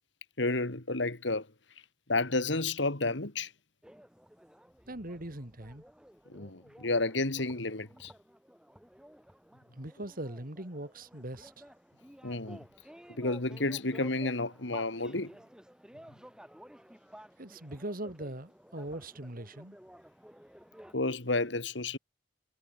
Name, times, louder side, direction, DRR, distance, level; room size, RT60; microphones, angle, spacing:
voice 1, 0.4-1.5 2.1-3.5 6.3-8.1 12.2-12.6 13.1-15.3 20.9-22.0, left 2 dB, 75° left, 2.6 m, -31 dB
sound 1, 3.8-20.9, equal, 5° right, 4.1 m, -54 dB
voice 2, 4.9-5.8 9.7-11.6 17.4-19.8, right 1 dB, 50° right, 3.4 m, -41 dB
head